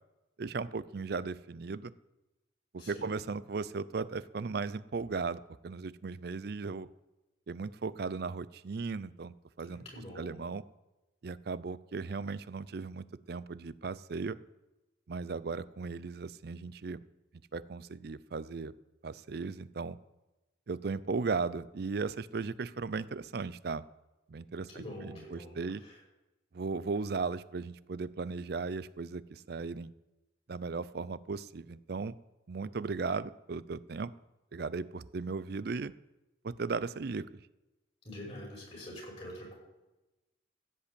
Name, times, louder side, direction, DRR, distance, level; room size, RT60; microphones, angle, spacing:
voice 1, 0.4-1.9 2.7-6.9 7.5-9.8 10.2-10.6 11.2-14.4 15.1-17.0 17.5-18.7 19.0-20.0 20.7-23.8 24.3-24.7 25.0-25.8 26.5-29.9 30.5-32.1 32.5-34.1 34.5-35.9 36.4-37.4, right 4 dB, 55° right, 18 dB, 0.5 m, -36 dB
voice 2, 2.8-3.1 9.7-10.4 24.7-26.0 38.0-39.5, left 1 dB, 30° left, -2 dB, 5.5 m, -45 dB
15.5 x 5.5 x 8.4 m, 1.0 s
head